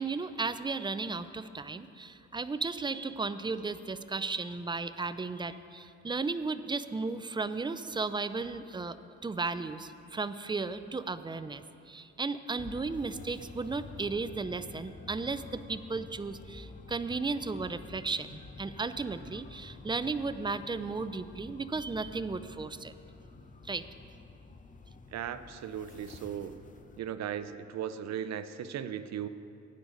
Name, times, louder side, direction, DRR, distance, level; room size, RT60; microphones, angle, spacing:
voice 1, 0.0-22.9 23.6-23.8, right 4 dB, 15° right, 13 dB, 0.4 m, -35 dB
sound 1, 12.6-27.0, left 3 dB, 25° left, 0.7 m, -50 dB
voice 2, 25.1-26.5 27.0-29.3, right 9 dB, 60° right, 13 dB, 0.6 m, -37 dB
14.5 x 9.6 x 3.9 m, 2.6 s
cardioid pair, 90°, 30 cm